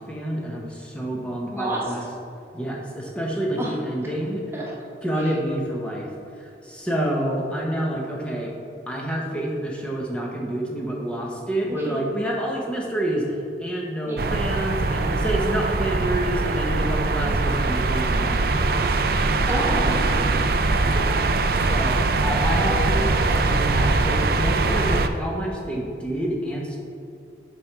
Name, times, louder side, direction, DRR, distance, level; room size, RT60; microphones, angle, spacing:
voice 1, 0.0-2.0 2.5-4.4 5.0-6.1 6.4-8.5 8.9-19.3 21.7-26.8, right 1 dB, 5° left, -2 dB, 1.0 m, -28 dB
voice 2, 1.5-1.8 3.6-3.7 4.5-4.8 5.2-5.3 11.9-12.0 14.0-14.3 19.5-21.2 21.5-21.8 22.6-23.2, right 1 dB, 15° right, -4 dB, 1.2 m, -30 dB
sound 1, 14.2-25.1, right 3 dB, 55° right, 0.4 m, -22 dB
7.1 x 6.0 x 4.7 m, 2.7 s
head